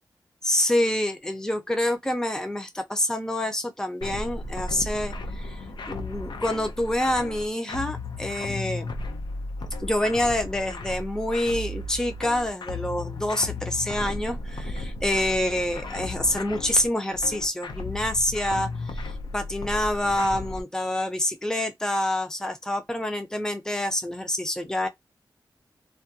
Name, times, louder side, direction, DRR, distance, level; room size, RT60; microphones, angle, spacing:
voice 1, 0.4-8.9 9.8-24.9, left 1 dB, 10° left, 0.5 m, -27 dB
sound 1, 4.0-20.6, left 2 dB, 90° left, 0.5 m, -35 dB
2.3 x 2.2 x 2.7 m
wide cardioid pair, 95°, 8 cm